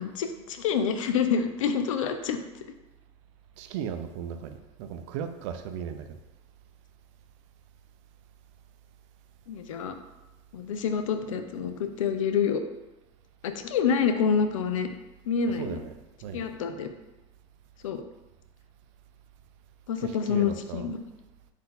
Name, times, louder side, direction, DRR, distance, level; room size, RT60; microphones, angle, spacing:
voice 1, 0.0-2.4 9.5-10.0 10.5-12.6 13.4-14.9 15.3-15.8 16.3-16.9 17.8-18.0 19.9-21.0, left 6 dB, 90° left, 0.4 m, -27 dB
voice 2, 3.6-6.2 15.5-16.0 16.2-16.6 20.0-20.9, right 8 dB, 70° right, 0.5 m, -37 dB
3.9 x 2.6 x 4.0 m
hypercardioid pair, 100°, 16 cm